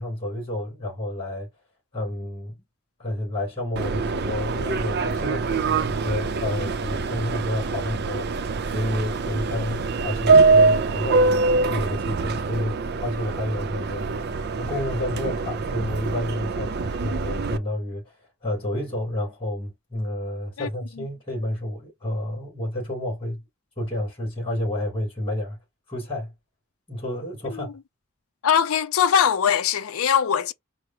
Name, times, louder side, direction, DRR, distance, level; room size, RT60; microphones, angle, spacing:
voice 1, 0.0-1.5 1.9-2.6 3.0-18.2 18.4-23.4 23.8-25.6 25.9-26.3 26.9-27.7, left 1 dB, 25° left, 3.2 m, -30 dB
Subway metro underground, 3.8-17.6, right 4 dB, 50° right, 0.5 m, -24 dB
voice 2, 28.4-30.5, left 8 dB, 75° left, 0.5 m, -21 dB
4.6 x 2.1 x 4.3 m
head